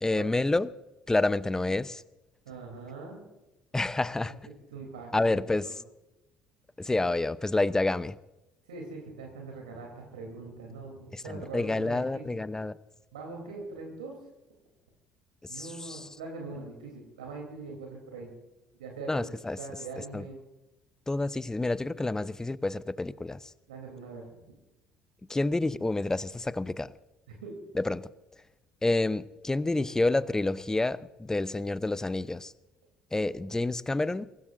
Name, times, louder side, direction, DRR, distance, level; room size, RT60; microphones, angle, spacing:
voice 1, 0.0-0.7 1.1-2.0 3.7-4.3 5.1-5.7 6.8-8.2 11.1-12.7 15.5-16.1 19.1-19.6 20.1-20.2 21.1-23.4 25.3-26.9 27.7-28.1 28.8-32.5 33.1-34.3, left 2 dB, 15° left, 17 dB, 0.8 m, -28 dB
voice 2, 2.4-3.2 4.3-4.4 4.7-5.7 8.7-12.4 13.1-14.1 15.5-18.3 18.8-20.4 23.7-24.3 27.4-27.5, right 3 dB, 75° right, 1 dB, 3.3 m, -42 dB
23.5 x 17.0 x 2.6 m, 0.98 s
figure-of-eight pair, 55°, 4 cm